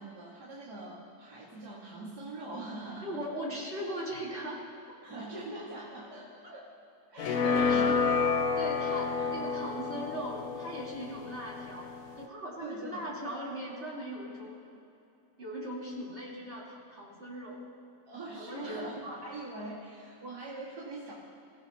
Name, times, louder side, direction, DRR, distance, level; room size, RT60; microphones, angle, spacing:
voice 1, 0.0-3.2 5.0-6.7 7.1-8.2 8.8-9.3 12.6-13.0 18.1-21.1, right 2 dB, 60° right, -7 dB, 2.7 m, -43 dB
voice 2, 3.0-5.3 7.4-8.1 8.4-11.9 12.2-14.6 15.4-17.6 18.3-18.9, equal, 35° right, -6 dB, 4.1 m, -39 dB
sound 1, 7.2-12.2, left 5 dB, 60° left, 1.1 m, -30 dB
29.0 x 16.0 x 3.0 m, 2.8 s
omnidirectional pair, 1.9 m